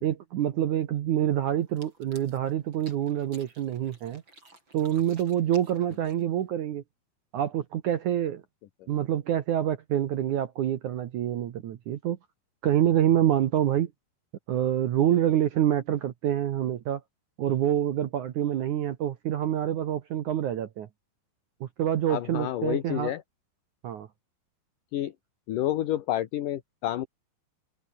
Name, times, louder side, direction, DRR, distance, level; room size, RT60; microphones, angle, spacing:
voice 1, 0.0-4.2 4.7-6.8 7.3-8.4 8.9-12.2 12.6-13.9 14.5-17.0 17.4-20.9 21.6-23.1 23.8-24.1, right 11 dB, 70° right, 1.9 m, -26 dB
sound 1, 1.6-6.5, right 2 dB, 25° right, 8.6 m, -55 dB
voice 2, 22.1-23.2 24.9-25.1 25.5-27.1, left 13 dB, 65° left, 2.3 m, -29 dB
omnidirectional pair, 5.2 m